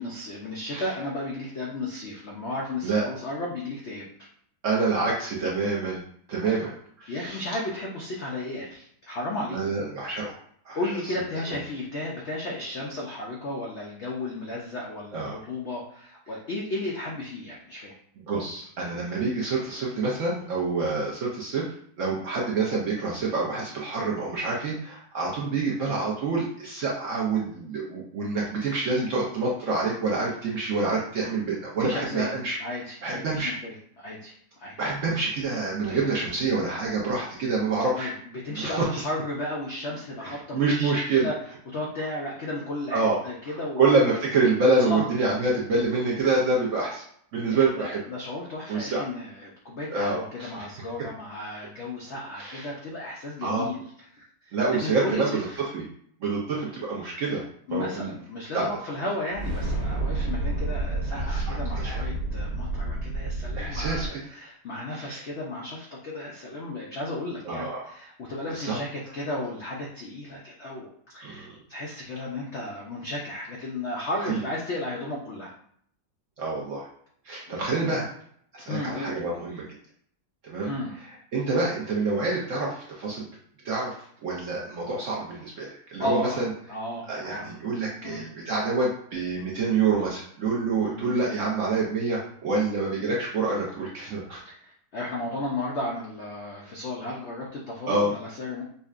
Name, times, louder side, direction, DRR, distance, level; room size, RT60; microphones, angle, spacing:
voice 1, 0.0-4.3 6.4-6.7 7.1-9.6 10.7-17.9 25.7-25.9 31.8-32.3 32.6-34.7 35.9-36.1 37.9-38.1 38.4-41.3 41.7-44.1 44.8-45.1 47.4-53.8 54.1-55.6 57.7-75.5 77.5-77.9 78.7-79.2 80.6-81.0 86.0-86.4 86.7-87.5 88.0-88.3 90.8-91.2 94.4-98.6, left 2 dB, 75° left, -3 dB, 0.6 m, -34 dB
voice 2, 4.6-6.0 6.3-6.7 7.0-7.6 9.5-10.4 10.6-10.8 15.1-15.4 18.3-32.6 33.0-33.5 34.8-38.1 38.6-38.9 40.2-41.3 42.9-43.2 43.5-47.0 47.3-48.0 48.7-49.0 49.9-50.7 52.3-52.7 53.4-53.7 54.5-55.4 55.7-55.8 56.2-57.4 57.7-58.1 58.5-58.7 61.1-61.6 61.8-62.0 63.5-64.1 64.9-65.3 67.4-67.9 68.5-68.7 71.2-71.5 74.2-74.4 76.4-76.8 77.2-78.1 78.5-79.7 80.4-80.7 81.0-83.3 83.6-86.5 87.1-94.4 97.9-98.1, right 3 dB, 65° right, -3 dB, 0.8 m, -27 dB
sound 1, 59.3-64.1, right 2 dB, 85° right, 1.6 m, -29 dB
5.3 x 2.1 x 2.4 m, 0.65 s
omnidirectional pair, 1.9 m